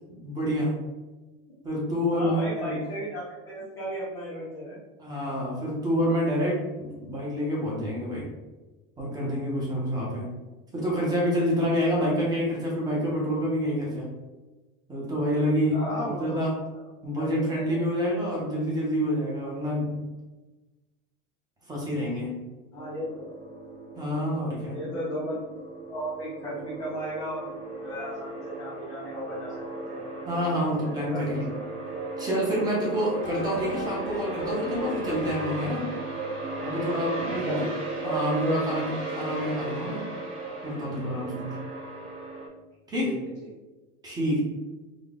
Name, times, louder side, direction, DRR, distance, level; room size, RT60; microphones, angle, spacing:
voice 1, 0.2-0.7 1.6-2.8 5.0-8.2 9.0-10.3 10.7-14.1 14.9-16.6 17.0-20.0 21.7-22.4 24.0-24.8 30.3-31.4 32.2-35.9 36.6-37.7 38.0-40.0 40.6-41.6 42.9-43.1 44.0-44.4, equal, 10° right, -4 dB, 0.7 m, -28 dB
voice 2, 2.1-4.8 15.7-16.4 17.2-17.8 22.7-23.3 24.7-25.4 25.9-29.6 29.9-30.0 30.8-31.5 37.3-37.7 38.0-38.7 43.0-43.2, equal, 10° left, -10 dB, 0.3 m, -35 dB
sound 1, 22.7-42.5, right 3 dB, 55° right, 1.5 m, -36 dB
sound 2, 32.6-35.9, left 4 dB, 45° left, 0.7 m, -39 dB
3.7 x 2.2 x 3.6 m, 1.2 s
supercardioid pair, 170°, 37 cm